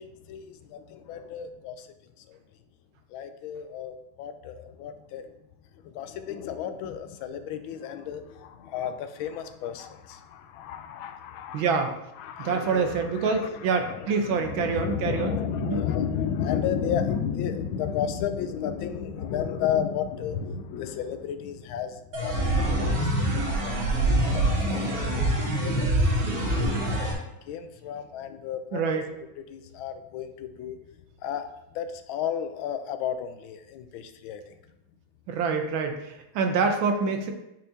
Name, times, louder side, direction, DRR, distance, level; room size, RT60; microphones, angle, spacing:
voice 1, 0.0-1.9 2.2-2.4 3.1-5.3 5.8-11.9 12.2-26.9 27.4-28.8 29.5-30.8 31.2-34.5, left 8 dB, 85° left, 9 dB, 1.4 m, -33 dB
voice 2, 11.5-11.9 12.4-15.8 28.7-29.1 35.3-37.3, right 5 dB, 80° right, 5 dB, 1.6 m, -26 dB
sound 1, 22.1-27.1, right 1 dB, 60° right, 2.0 m, -25 dB
8.8 x 4.5 x 2.7 m, 0.88 s
omnidirectional pair, 2.2 m